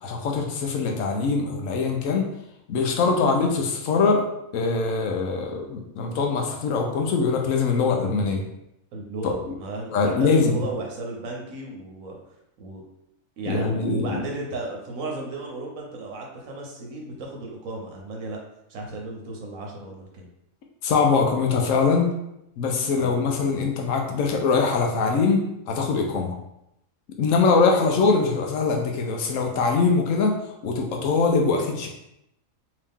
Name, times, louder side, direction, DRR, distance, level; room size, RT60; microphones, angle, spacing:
voice 1, 0.0-2.3 2.7-4.2 4.5-8.4 9.2-9.3 9.9-10.6 13.5-14.2 20.8-22.1 22.6-25.4 25.7-26.4 27.2-30.3 30.6-31.9, left 4 dB, 80° left, 2 dB, 1.0 m, -22 dB
voice 2, 8.9-12.2 12.6-12.8 13.4-18.4 18.7-20.3 23.0-23.3, right 2 dB, 80° right, 0 dB, 1.2 m, -34 dB
3.0 x 2.8 x 3.5 m, 0.83 s
omnidirectional pair, 1.4 m